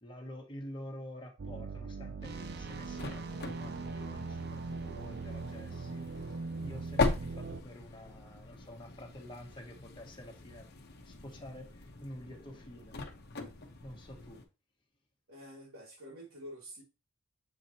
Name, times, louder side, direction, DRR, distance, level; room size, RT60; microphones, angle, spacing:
voice 1, 0.0-10.7 11.0-13.0 13.8-14.4, equal, 25° left, 1.5 m, -48 dB
sound 1, 1.4-7.6, right 4 dB, 50° right, 0.5 m, -40 dB
sound 2, 2.4-14.5, left 3 dB, 50° left, 1.0 m, -40 dB
voice 2, 15.3-16.8, equal, 75° right, 3.0 m, -48 dB
7.3 x 4.7 x 2.9 m
head